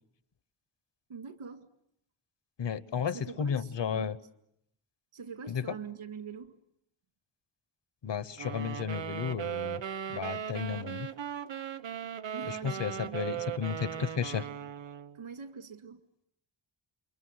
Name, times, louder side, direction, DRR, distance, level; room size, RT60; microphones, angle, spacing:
voice 1, 1.1-1.7 3.1-4.2 5.1-6.6 12.3-13.6 15.1-16.0, right 6 dB, 80° right, 8 dB, 2.1 m, -44 dB
voice 2, 2.6-4.2 5.5-5.6 8.0-9.8 10.1-11.1 12.5-14.5, left 7 dB, 60° left, 16 dB, 1.0 m, -33 dB
sound 1, 8.4-15.2, right 9 dB, 60° right, 0.9 m, -38 dB
29.0 x 23.5 x 7.9 m, 0.78 s
wide cardioid pair, 155°, 49 cm